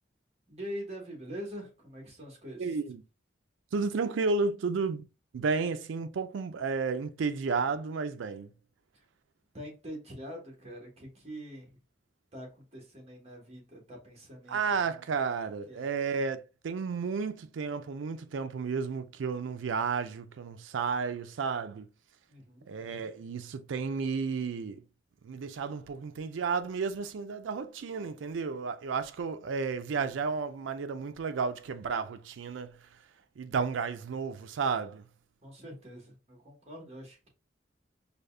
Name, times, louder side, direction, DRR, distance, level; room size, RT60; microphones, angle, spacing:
voice 1, 0.5-2.8 9.5-11.7 12.3-14.7 15.7-15.9 22.3-22.7 35.4-37.3, equal, 35° right, 1.2 m, -44 dB
voice 2, 2.6-3.0 3.7-5.1 5.3-8.5 14.5-21.9 22.7-24.8 25.2-32.9 33.4-35.1, right 5 dB, 80° right, 0.4 m, -32 dB
5.0 x 2.3 x 2.2 m
head